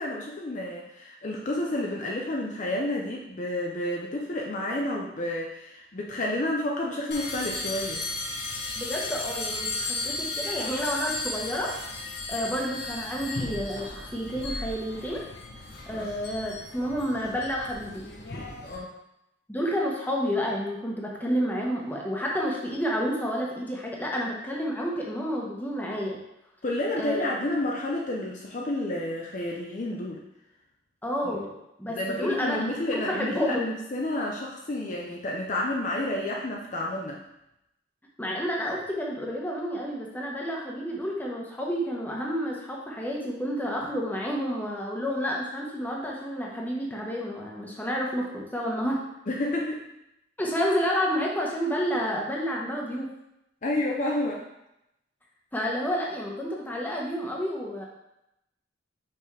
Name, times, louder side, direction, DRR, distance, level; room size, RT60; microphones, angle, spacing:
voice 1, 0.0-8.0 15.9-16.1 18.6-18.9 26.6-30.2 31.9-37.2 49.3-49.8 53.6-54.5, left 1 dB, 40° left, -1 dB, 0.6 m, -30 dB
sound 1, 7.1-18.8, left 2 dB, 55° left, 1.0 m, -35 dB
voice 2, 8.8-11.8 12.3-15.2 15.9-18.0 19.5-26.2 27.0-27.3 31.0-32.6 32.9-33.6 38.2-49.0 50.4-53.1 55.5-57.9, equal, 10° left, -3 dB, 1.0 m, -30 dB
5.7 x 5.1 x 3.2 m, 0.85 s
head